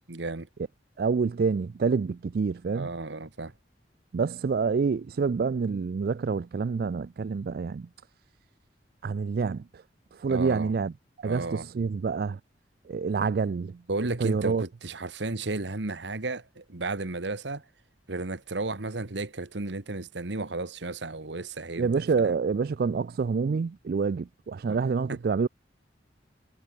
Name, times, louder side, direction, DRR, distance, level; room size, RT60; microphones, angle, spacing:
voice 1, 0.1-0.5 2.7-3.5 10.3-10.7 11.2-11.7 13.9-17.6 18.1-22.4 24.7-25.2, right 2 dB, 75° right, 1.4 m, -34 dB
voice 2, 1.0-2.9 4.1-7.9 9.0-9.6 10.2-10.9 11.2-12.4 12.9-13.7 14.2-14.6 21.8-25.5, right 5 dB, 55° right, 0.3 m, -27 dB
head